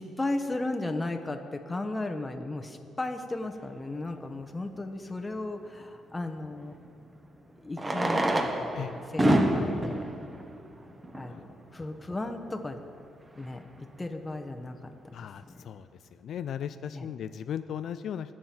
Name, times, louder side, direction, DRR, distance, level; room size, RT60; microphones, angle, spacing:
voice 1, 0.0-6.8 7.6-10.1 11.1-12.8 13.4-14.9 15.5-15.6 16.9-17.1, left 2 dB, 20° left, 5 dB, 1.0 m, -35 dB
Fireworks, 4.2-4.3 6.5-6.6 7.7-11.4 12.2-12.3 12.5-12.6 12.8-12.9 13.4-13.7, right 1 dB, 20° right, 1.4 m, -28 dB
voice 2, 15.1-15.9 16.2-18.3, left 9 dB, 65° left, 11 dB, 0.4 m, -36 dB
21.0 x 7.5 x 4.5 m, 2.4 s
cardioid pair, 90°, 0 cm